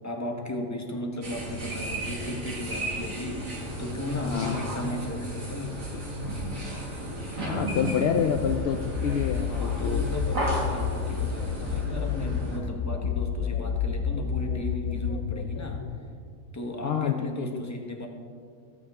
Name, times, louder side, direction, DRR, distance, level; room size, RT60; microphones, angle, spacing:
voice 1, 0.0-5.8 9.4-15.9 16.5-18.1, left 1 dB, 15° left, 2 dB, 1.0 m, -35 dB
sound 1, 1.2-12.6, equal, 65° right, 2.5 m, -34 dB
voice 2, 4.2-4.6 5.9-6.0 7.5-10.1 16.8-17.6, left 7 dB, 75° left, 6 dB, 0.5 m, -28 dB
sound 2, 8.4-16.0, left 7 dB, 90° left, 1.1 m, -30 dB
17.5 x 8.5 x 3.6 m, 2.2 s
omnidirectional pair, 1.5 m